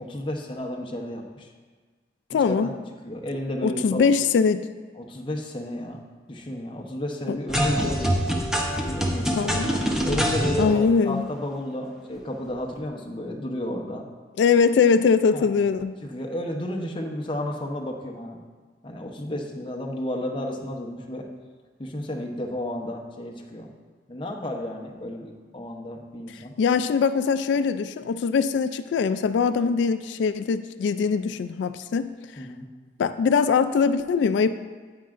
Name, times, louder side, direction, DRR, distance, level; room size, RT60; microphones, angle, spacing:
voice 1, 0.0-1.5 2.5-2.7 3.0-4.1 5.0-6.0 6.3-8.1 8.8-9.5 10.1-14.1 15.3-15.5 16.0-18.4 18.8-21.2 21.8-23.7 24.1-26.5 32.4-32.7, left 1 dB, 30° left, 1 dB, 0.8 m, -32 dB
voice 2, 2.3-2.7 3.6-4.6 7.3-7.4 9.4-9.7 10.6-11.2 14.4-15.9 26.6-32.5 33.0-34.5, left 5 dB, 85° left, 11 dB, 0.3 m, -22 dB
sound 1, 7.5-10.6, equal, 5° right, 0.8 m, -24 dB
9.2 x 8.8 x 2.5 m, 1.4 s
head